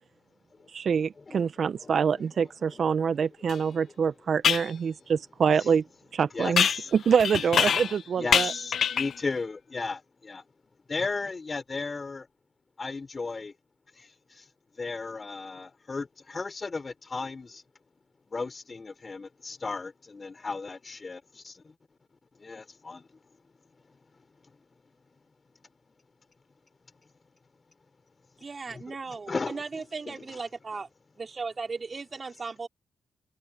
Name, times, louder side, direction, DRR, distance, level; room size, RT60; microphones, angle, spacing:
voice 1, 0.7-5.8 6.1-6.7 6.9-8.5, right 6 dB, 60° right, 0.9 m, -25 dB
sound 1, 3.5-3.6 4.4-4.7 6.6-8.0 8.3-9.2, left 8 dB, 70° left, 0.7 m, -25 dB
voice 2, 6.3-6.9 8.2-10.4 10.9-12.3 12.8-13.5 13.9-14.4 14.8-17.6 18.3-21.7 22.4-23.1 28.7-29.6 30.1-30.4, left 4 dB, 35° left, 3.4 m, -35 dB
voice 3, 28.4-30.9 31.2-32.7, right 4 dB, 40° right, 4.5 m, -37 dB
supercardioid pair, 55°, 0 cm